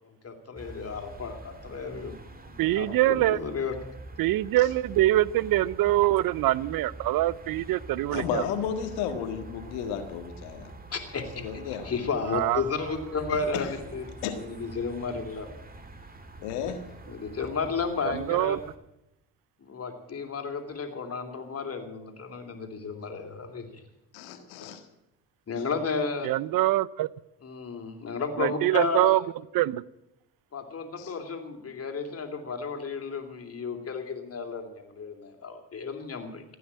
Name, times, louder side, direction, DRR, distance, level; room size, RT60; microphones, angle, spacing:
voice 1, 0.2-2.1 2.4-3.7 10.9-14.0 14.3-15.5 17.1-18.6 19.6-23.8 25.5-26.3 27.4-29.2 30.5-36.4, left 5 dB, 40° left, 6 dB, 3.2 m, -33 dB
sound 1, 0.6-18.8, right 2 dB, 25° right, 2.3 m, -46 dB
voice 2, 2.6-3.4 4.2-8.4 12.3-12.6 18.0-18.6 26.2-27.1 28.4-29.2 29.5-29.8, right 15 dB, 60° right, 22 dB, 0.6 m, -24 dB
voice 3, 8.1-10.7 11.4-11.9 13.5-13.7 14.2-14.4 16.4-16.8 24.1-24.8 25.6-25.7 31.0-31.1, left 8 dB, 80° left, 7 dB, 1.8 m, -33 dB
16.0 x 9.4 x 8.8 m, 0.89 s
supercardioid pair, 70°, 38 cm